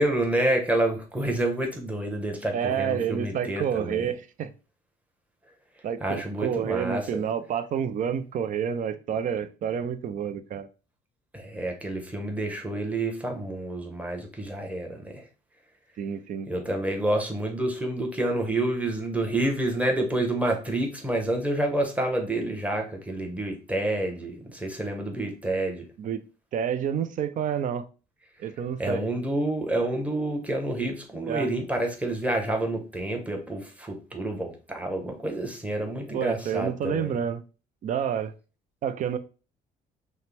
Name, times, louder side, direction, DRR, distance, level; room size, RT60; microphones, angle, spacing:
voice 1, 0.0-4.1 6.0-7.2 11.3-15.2 16.5-25.9 28.8-37.2, right 1 dB, 10° right, 1.0 m, -28 dB
voice 2, 2.5-4.5 5.8-10.7 16.0-16.5 26.0-26.2 26.5-27.9 28.4-29.0 31.3-31.5 36.1-37.4 37.8-38.3 38.8-39.2, right 8 dB, 50° right, 0.5 m, -29 dB
5.6 x 2.1 x 3.4 m
cardioid pair, 110°, 17 cm